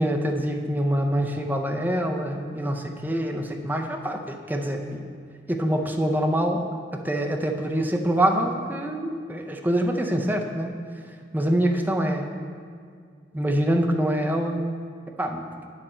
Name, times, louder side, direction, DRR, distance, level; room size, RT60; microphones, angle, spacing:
voice 1, 0.0-5.1 5.5-6.6 6.9-10.7 11.3-12.3 13.3-14.6 15.2-15.4, right 1 dB, 10° right, 2 dB, 0.5 m, -25 dB
8.9 x 6.8 x 4.3 m, 2.1 s
head